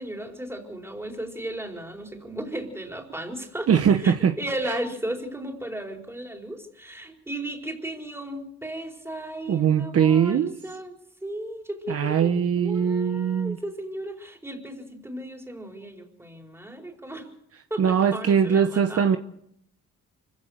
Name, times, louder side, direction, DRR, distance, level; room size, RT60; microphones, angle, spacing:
voice 1, 0.0-3.7 4.0-17.3 17.7-19.1, right 1 dB, 10° right, 2 dB, 4.5 m, -35 dB
voice 2, 3.7-4.3 4.7-4.8 9.5-10.5 11.9-13.6 17.8-19.2, right 7 dB, 50° right, 8 dB, 1.2 m, -21 dB
25.5 x 16.0 x 6.6 m, 0.73 s
cardioid pair, 90°, 30 cm